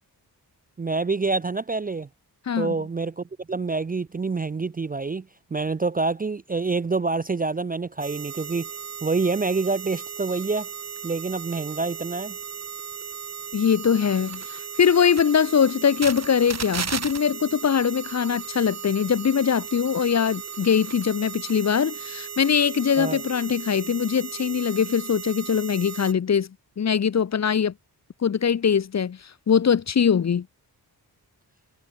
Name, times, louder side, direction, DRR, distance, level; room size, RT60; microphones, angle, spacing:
voice 1, 0.8-2.1 2.6-5.3 5.5-8.7 9.0-10.7 11.0-12.4 23.0-23.2, right 3 dB, 25° right, 0.4 m, -27 dB
voice 2, 2.5-2.8 13.5-26.5 26.8-27.7 28.2-29.2 29.5-30.5, left 7 dB, 45° left, 0.7 m, -22 dB
sound 1, 8.0-26.1, right 6 dB, 45° right, 1.2 m, -36 dB
wide cardioid pair, 130°, 38 cm